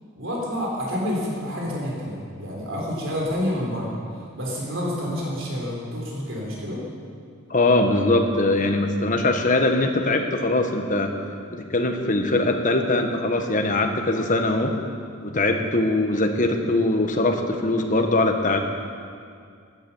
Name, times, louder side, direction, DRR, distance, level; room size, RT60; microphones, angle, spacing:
voice 1, 0.2-4.0 4.3-6.8, equal, 60° right, -2 dB, 3.7 m, -28 dB
voice 2, 7.5-11.1 11.5-14.8 15.2-18.6, left 2 dB, 35° left, 4 dB, 1.4 m, -22 dB
16.5 x 12.0 x 7.1 m, 2.2 s
head